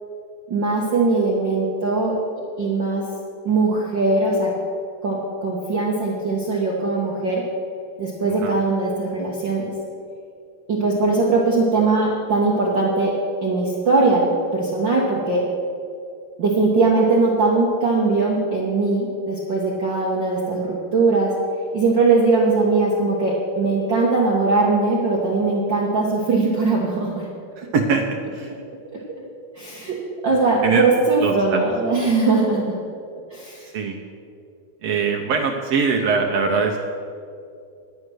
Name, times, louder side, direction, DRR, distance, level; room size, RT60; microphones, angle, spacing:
voice 1, 0.5-2.2 2.6-3.0 3.4-4.5 5.0-7.4 8.0-9.7 10.7-13.1 13.4-15.4 16.4-21.3 21.7-27.3 28.9-29.0 29.6-29.9 30.2-32.8 33.3-33.7, right 3 dB, 60° right, -3 dB, 1.2 m, -20 dB
voice 2, 8.3-8.6 27.6-28.5 30.6-30.9 31.2-31.6 33.6-34.0 34.8-36.8, right 5 dB, 85° right, 1 dB, 1.4 m, -22 dB
10.5 x 9.4 x 6.3 m, 2.5 s
omnidirectional pair, 3.9 m